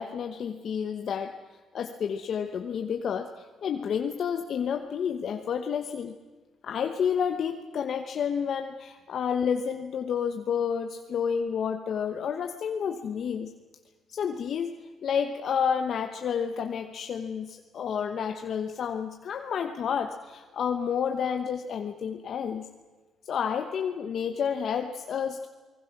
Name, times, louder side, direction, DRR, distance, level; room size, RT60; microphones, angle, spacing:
voice 1, 0.0-1.3 1.7-6.1 6.6-13.5 14.1-14.7 15.0-22.7 23.2-25.5, left 7 dB, 60° left, 6 dB, 1.0 m, -30 dB
28.5 x 20.5 x 6.0 m, 1.3 s
cardioid pair, 90°, 0 cm